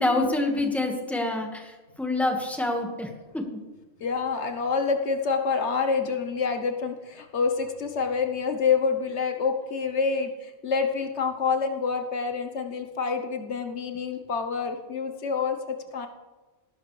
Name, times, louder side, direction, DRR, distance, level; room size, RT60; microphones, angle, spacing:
voice 1, 0.0-3.6, left 2 dB, ahead, 2 dB, 1.6 m, -27 dB
voice 2, 4.0-16.1, left 5 dB, 80° left, 5 dB, 1.3 m, -27 dB
18.0 x 11.0 x 3.3 m, 1.2 s
omnidirectional pair, 1.2 m